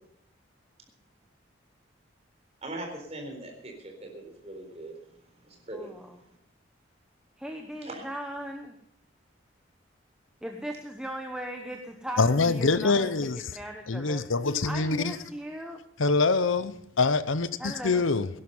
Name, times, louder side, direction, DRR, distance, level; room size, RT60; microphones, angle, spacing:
voice 1, 2.6-5.0 5.4-5.9 7.8-8.0, right 1 dB, 30° right, 4.1 m, -40 dB
voice 2, 5.7-6.2 7.4-8.7 10.4-14.2 14.6-15.8 17.6-18.0, equal, 5° right, 1.0 m, -38 dB
voice 3, 12.2-13.5 13.9-15.2 16.0-18.3, left 3 dB, 75° left, 0.8 m, -25 dB
17.5 x 11.5 x 5.5 m
head